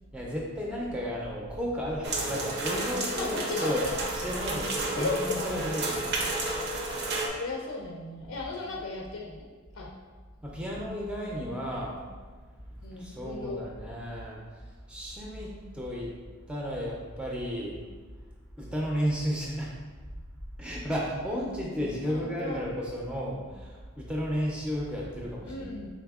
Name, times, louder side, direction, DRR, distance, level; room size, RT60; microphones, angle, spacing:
voice 1, 0.1-3.8 4.1-6.2 8.2-8.6 10.4-12.0 12.9-14.4 14.9-16.1 16.5-17.8 18.6-19.7 20.6-25.8, equal, 5° right, -3 dB, 0.4 m, -33 dB
sound 1, 2.0-7.3, right 2 dB, 55° right, 0.6 m, -31 dB
voice 2, 3.1-3.9 4.9-5.2 5.5-5.7 7.4-9.5 9.8-9.9 12.8-13.6 22.1-22.6 25.5-25.9, left 3 dB, 85° left, 0 dB, 0.4 m, -35 dB
4.2 x 3.4 x 2.3 m, 1.4 s
head